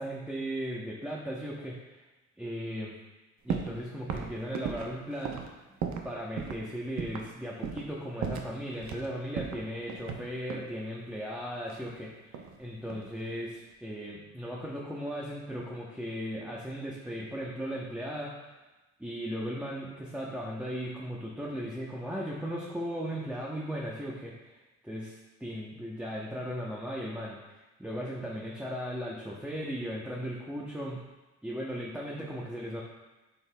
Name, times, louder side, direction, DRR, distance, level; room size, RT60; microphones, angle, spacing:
voice 1, 0.0-2.1 2.4-2.9 3.4-5.4 6.0-18.3 19.0-24.5 24.8-31.0 31.4-32.8, equal, 5° right, -4 dB, 0.8 m, -37 dB
sound 1, 3.5-3.8 4.1-6.1 6.4-6.6 7.0-7.3 7.6-7.9 8.2-9.1 9.4-10.7 11.7-12.6 12.9-13.3, right 7 dB, 65° right, 0.7 m, -36 dB
7.8 x 5.6 x 2.2 m, 1.1 s
cardioid pair, 90°, 30 cm